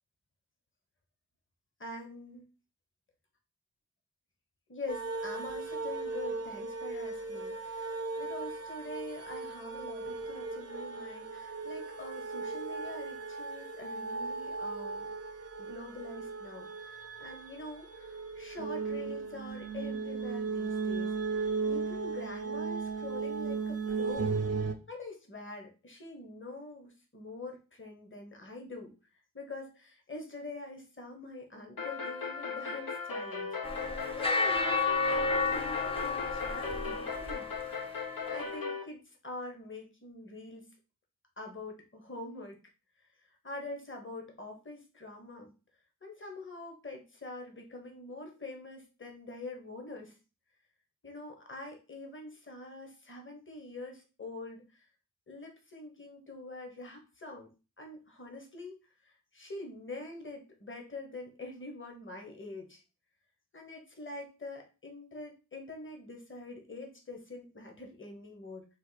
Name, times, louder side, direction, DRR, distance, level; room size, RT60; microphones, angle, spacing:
voice 1, 1.8-2.4 4.7-15.1 15.6-24.4 24.9-28.9 29.3-33.6 34.1-37.5 38.3-40.6 41.4-42.6 43.4-45.5 46.0-50.1 51.0-54.8 55.3-57.5 57.8-58.8 59.0-62.8 63.5-68.7, left 2 dB, 35° left, 2 dB, 1.2 m, -45 dB
sound 1, 4.9-24.7, right 4 dB, 45° right, 0.6 m, -36 dB
sound 2, 31.8-38.8, left 5 dB, 75° left, 0.9 m, -38 dB
sound 3, 33.6-37.9, left 3 dB, 15° left, 0.7 m, -31 dB
4.2 x 2.5 x 4.0 m, 0.31 s
wide cardioid pair, 50°, 34 cm